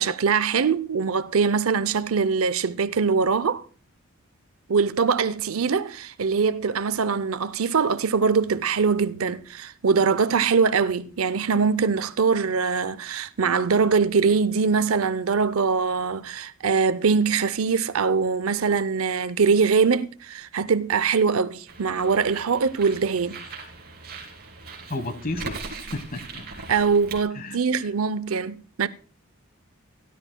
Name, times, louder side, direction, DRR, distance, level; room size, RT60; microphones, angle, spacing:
voice 1, 0.0-3.6 4.7-23.4 26.7-28.9, right 5 dB, 75° right, 0.6 m, -22 dB
Bird, 21.7-27.2, right 4 dB, 45° right, 3.0 m, -40 dB
voice 2, 24.9-26.5 27.3-27.6, left 2 dB, 40° left, 1.3 m, -32 dB
17.5 x 12.0 x 2.2 m
head